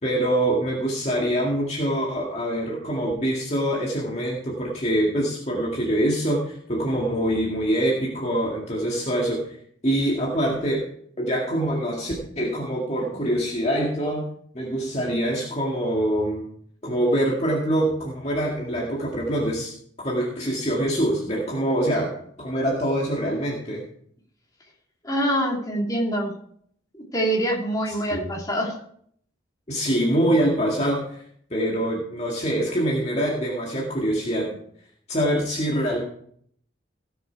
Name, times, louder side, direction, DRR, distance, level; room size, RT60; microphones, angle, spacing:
voice 1, 0.0-9.4 9.8-10.9 11.2-14.3 14.5-16.5 16.8-19.7 20.0-22.1 22.4-23.8 27.9-28.3 29.7-31.2 31.5-34.6 35.1-36.0, right 1 dB, 35° left, -3 dB, 2.2 m, -24 dB
voice 2, 25.0-26.3 26.9-28.7, right 1 dB, 20° left, -2 dB, 3.0 m, -25 dB
17.5 x 7.1 x 4.7 m, 0.64 s
head